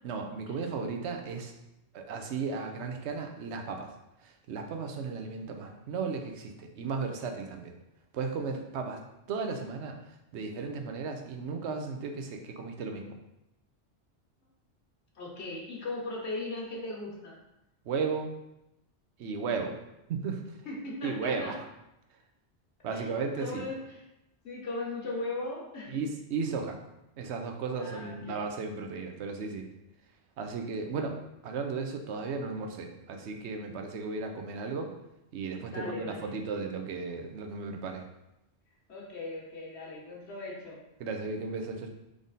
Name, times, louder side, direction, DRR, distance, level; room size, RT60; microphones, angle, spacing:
voice 1, 0.0-1.5 1.9-3.9 4.2-7.7 8.1-9.0 9.3-10.0 10.3-13.2 17.9-18.3 19.2-19.8 20.1-20.6 21.0-21.6 22.8-23.6 25.9-26.8 27.2-29.7 30.4-31.2 31.4-34.9 35.3-38.1 41.0-41.9, right 4 dB, 75° right, 4 dB, 0.9 m, -35 dB
voice 2, 15.1-17.4 20.6-21.5 22.9-23.0 23.4-24.0 24.4-26.0 27.8-28.5 35.6-36.3 38.9-40.8, left 2 dB, 70° left, -3 dB, 1.4 m, -38 dB
3.7 x 3.6 x 4.0 m, 0.89 s
omnidirectional pair, 1.2 m